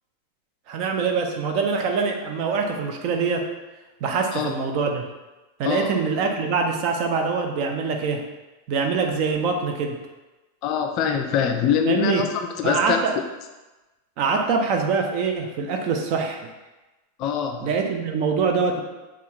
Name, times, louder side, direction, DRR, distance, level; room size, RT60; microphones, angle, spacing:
voice 1, 0.7-3.5 4.0-5.0 5.6-8.2 8.7-10.0 11.9-12.3 12.6-13.1 14.2-16.5 17.6-18.8, right 5 dB, 40° right, 3 dB, 0.6 m, -24 dB
voice 2, 5.6-5.9 10.6-13.0 17.2-17.7, left 8 dB, 40° left, 5 dB, 0.4 m, -24 dB
6.8 x 2.4 x 3.0 m, 1.1 s
figure-of-eight pair, 90°, 0 cm